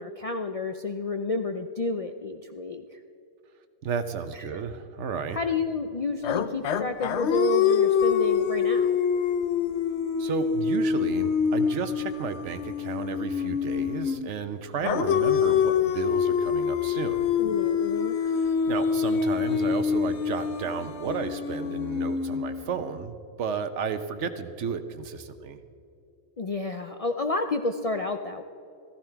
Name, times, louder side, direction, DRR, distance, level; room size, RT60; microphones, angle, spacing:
voice 1, 0.0-3.0 4.3-4.6 5.3-9.0 17.4-18.2 26.4-28.4, left 3 dB, 50° left, 6 dB, 0.4 m, -30 dB
voice 2, 3.8-5.4 10.2-17.3 18.2-25.6, right 6 dB, 70° right, 10 dB, 1.1 m, -33 dB
sound 1, 6.2-14.3 14.8-22.9, left 7 dB, 65° left, 0.9 m, -26 dB
14.5 x 14.5 x 4.5 m, 2.7 s
omnidirectional pair, 1.3 m